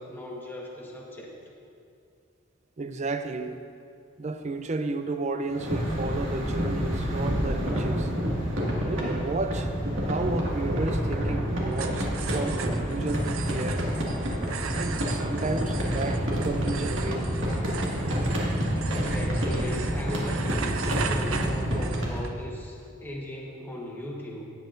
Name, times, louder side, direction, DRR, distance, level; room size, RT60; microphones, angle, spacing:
voice 1, 0.0-1.3 18.9-24.5, left 1 dB, 10° left, -2 dB, 1.3 m, -38 dB
voice 2, 2.8-3.6 4.2-8.1 8.8-9.7 10.1-14.0 14.7-17.3, right 3 dB, 35° right, 9 dB, 0.5 m, -32 dB
sound 1, 5.5-22.2, equal, 65° right, 2.0 m, -28 dB
sound 2, 11.7-22.3, right 6 dB, 85° right, 0.5 m, -38 dB
17.0 x 8.2 x 2.6 m, 2.4 s
head